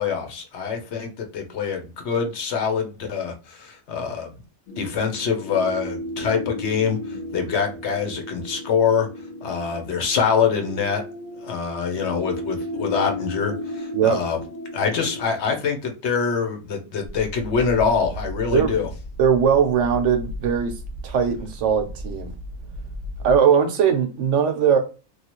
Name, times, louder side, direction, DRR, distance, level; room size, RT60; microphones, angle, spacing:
voice 1, 0.0-4.3 4.8-9.1 9.4-11.0 11.4-14.4 14.7-18.9, left 6 dB, 60° left, 1.0 m, -24 dB
sound 1, 4.7-15.2, left 1 dB, 85° left, 1.2 m, -34 dB
sound 2, 17.0-23.4, equal, 45° right, 0.4 m, -35 dB
voice 2, 18.5-18.8 19.2-20.7 21.0-22.3 23.2-24.8, right 7 dB, 70° right, 0.9 m, -20 dB
3.0 x 2.4 x 2.9 m
omnidirectional pair, 1.4 m